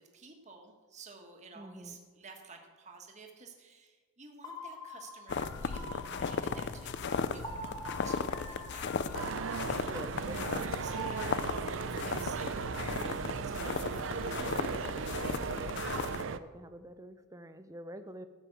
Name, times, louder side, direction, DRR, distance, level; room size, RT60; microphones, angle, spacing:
voice 1, 0.0-10.4 10.8-14.5, right 4 dB, 35° right, 3 dB, 1.3 m, -53 dB
voice 2, 1.6-2.0 9.8-11.0 15.5-15.8 16.3-18.3, equal, 15° right, 10 dB, 0.5 m, -47 dB
sound 1, 4.4-11.3, equal, 20° left, 1.8 m, -45 dB
sound 2, 5.3-16.2, left 5 dB, 50° left, 0.4 m, -36 dB
sound 3, 9.1-16.4, right 5 dB, 60° right, 0.5 m, -37 dB
13.5 x 5.3 x 7.7 m, 1.4 s
head